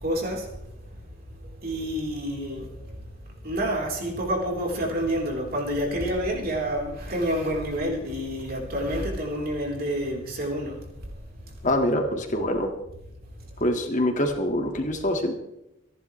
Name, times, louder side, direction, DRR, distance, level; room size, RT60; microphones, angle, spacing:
voice 1, 0.0-0.5 1.6-2.7 3.4-10.8, equal, 50° right, 0 dB, 3.9 m, -28 dB
voice 2, 11.6-12.7 13.6-15.3, left 1 dB, 40° left, 4 dB, 1.9 m, -25 dB
27.0 x 11.0 x 3.3 m, 0.87 s
head